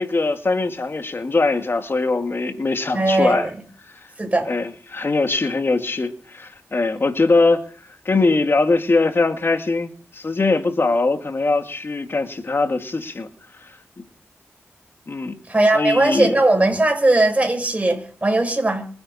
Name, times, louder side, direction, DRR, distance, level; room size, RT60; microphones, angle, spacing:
voice 1, 0.0-3.5 4.5-7.6 8.1-13.3 13.6-13.7 15.1-15.4 15.7-16.4, left 3 dB, 50° left, 2.2 m, -21 dB
voice 2, 2.9-3.5 4.2-4.5 15.5-18.9, right 2 dB, 30° right, 7.0 m, -19 dB
26.0 x 9.6 x 4.3 m
cardioid pair, 55°, 5 cm